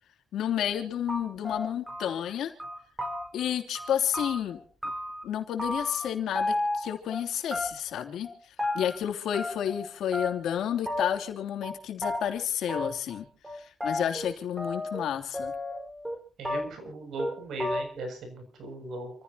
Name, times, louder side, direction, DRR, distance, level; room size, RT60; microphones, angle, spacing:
voice 1, 0.3-2.5 3.3-4.6 5.2-8.3 8.7-13.3 13.5-15.5, left 9 dB, 80° left, 4 dB, 3.0 m, -30 dB
sound 1, 0.7-0.8 1.1-2.3 2.6-3.5 3.7-5.2 5.6-6.1 6.3-7.2 7.5-8.0 8.2-9.0 9.3-9.9 10.1-10.6 10.9-11.3 11.6-11.7 12.0-12.2 12.7-13.2 13.4-15.1 15.3-16.2 16.4-16.9 17.2-17.3 17.6-18.1, left 1 dB, 10° right, 5.1 m, -33 dB
voice 2, 16.4-19.1, right 1 dB, 70° right, 5 dB, 7.3 m, -37 dB
29.0 x 15.5 x 2.9 m, 0.36 s
cardioid pair, 120°, 0 cm